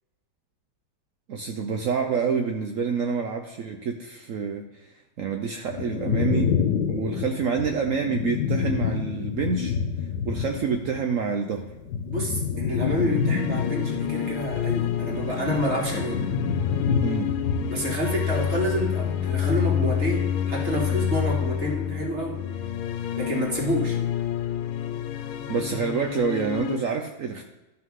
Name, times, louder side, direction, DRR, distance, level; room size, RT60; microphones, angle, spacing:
voice 1, 1.3-4.9 5.2-6.5 6.9-9.7 10.2-11.6 17.0-17.3 25.5-27.4, right 5 dB, 85° right, 3 dB, 0.7 m, -27 dB
sound 1, 5.7-11.0 11.3-19.8 20.2-20.9, left 6 dB, 65° left, 1.2 m, -28 dB
voice 2, 12.1-16.3 17.7-22.4 23.2-24.0, equal, 35° right, -2 dB, 2.0 m, -28 dB
sound 2, 13.0-26.8, left 9 dB, 85° left, 1.5 m, -29 dB
12.5 x 5.9 x 3.7 m, 1.0 s
omnidirectional pair, 2.2 m